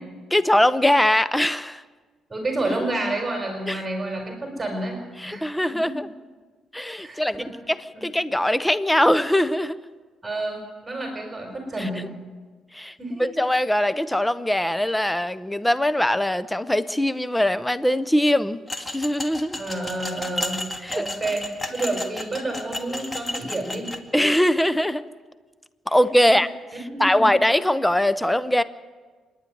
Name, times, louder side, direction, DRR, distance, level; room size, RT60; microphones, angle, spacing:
voice 1, 0.3-1.8 3.7-3.8 5.2-6.1 6.7-9.8 11.8-12.1 12.7-12.9 13.2-19.6 20.8-21.1 24.1-25.0 25.9-26.5 27.0-28.6, left 1 dB, 5° left, 15 dB, 0.7 m, -21 dB
voice 2, 2.3-5.0 5.3-5.5 5.8-5.9 7.0-7.5 7.9-8.0 10.2-12.1 13.0-13.2 19.5-20.6 20.9-23.9 26.2-26.3 26.9-27.2, right 2 dB, 20° right, 2 dB, 5.2 m, -29 dB
sound 1, 18.7-24.0, left 1 dB, 25° left, 2.0 m, -33 dB
26.5 x 11.0 x 9.4 m, 1.4 s
cardioid pair, 90°, 0 cm